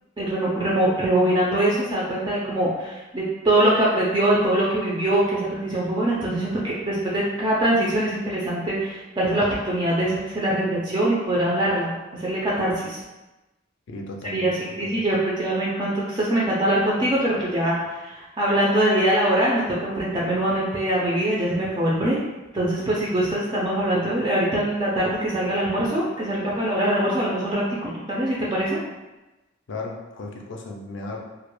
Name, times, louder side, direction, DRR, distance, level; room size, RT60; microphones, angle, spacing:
voice 1, 0.2-13.0 14.3-14.5 14.8-22.2 22.5-28.8, right 1 dB, 20° right, -5 dB, 0.3 m, -23 dB
voice 2, 13.9-15.2 29.7-31.2, left 2 dB, 65° left, 1 dB, 0.4 m, -36 dB
2.2 x 2.0 x 3.0 m, 1.1 s
head